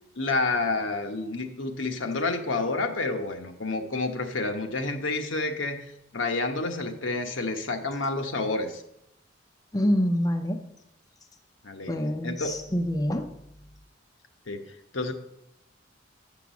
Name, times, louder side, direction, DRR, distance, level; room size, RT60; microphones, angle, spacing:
voice 1, 0.2-5.8 6.1-8.8 11.6-12.0 12.2-12.5 14.5-14.6 14.9-15.1, left 3 dB, 75° left, 5 dB, 1.1 m, -29 dB
voice 2, 9.7-10.6 11.9-13.3, equal, 20° left, 6 dB, 0.6 m, -26 dB
7.1 x 6.0 x 7.0 m, 0.80 s
head